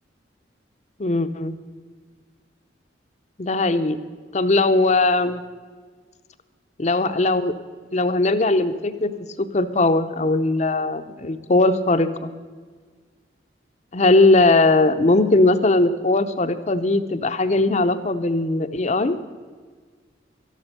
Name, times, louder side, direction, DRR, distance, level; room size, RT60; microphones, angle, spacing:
voice 1, 1.0-1.5 3.4-4.0 4.3-5.4 6.8-7.5 7.9-9.1 9.4-12.3 13.9-19.2, left 2 dB, 40° left, 11 dB, 0.7 m, -19 dB
13.0 x 11.5 x 6.7 m, 1.5 s
head